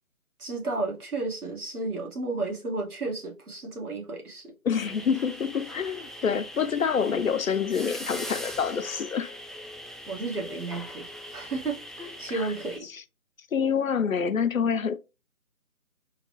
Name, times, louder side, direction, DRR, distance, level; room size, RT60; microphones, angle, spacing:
voice 1, 0.4-4.5 10.1-12.9, right 3 dB, 85° right, 1.7 m, -33 dB
voice 2, 4.6-9.3 12.3-12.5 13.5-15.0, left 7 dB, 70° left, 0.5 m, -27 dB
sound 1, 4.8-12.8, equal, ahead, 0.3 m, -41 dB
3.7 x 2.2 x 3.1 m
figure-of-eight pair, 175°, 43 cm